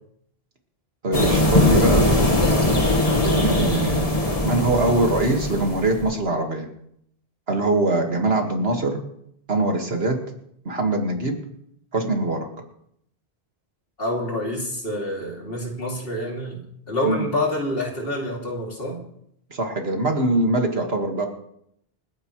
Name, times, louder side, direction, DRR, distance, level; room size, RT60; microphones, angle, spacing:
voice 1, 1.0-2.1 3.2-6.7 7.5-9.0 9.5-10.2 10.7-11.4 11.9-12.5 17.1-17.3 19.5-21.3, right 2 dB, 70° right, 3 dB, 2.1 m, -23 dB
sound 1, 1.1-6.0, left 1 dB, 35° left, 1.6 m, -20 dB
voice 2, 14.0-19.0, left 1 dB, 65° left, -1 dB, 3.0 m, -27 dB
28.5 x 9.6 x 3.2 m, 0.73 s
omnidirectional pair, 1.1 m